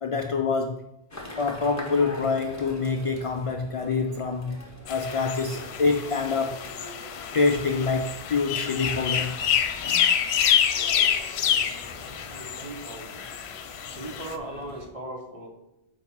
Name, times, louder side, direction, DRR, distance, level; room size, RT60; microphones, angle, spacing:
voice 1, 0.0-0.8 1.4-6.6 7.3-9.4 9.8-10.0 11.6-11.7, left 4 dB, 55° left, 5 dB, 0.3 m, -26 dB
sound 1, 1.1-14.9, left 1 dB, 15° left, 1.0 m, -44 dB
sound 2, 4.9-14.4, left 8 dB, 85° left, 0.8 m, -27 dB
voice 2, 12.0-13.1 13.9-15.5, right 2 dB, 35° right, 1 dB, 1.0 m, -38 dB
4.8 x 4.2 x 5.8 m, 0.90 s
omnidirectional pair, 1.1 m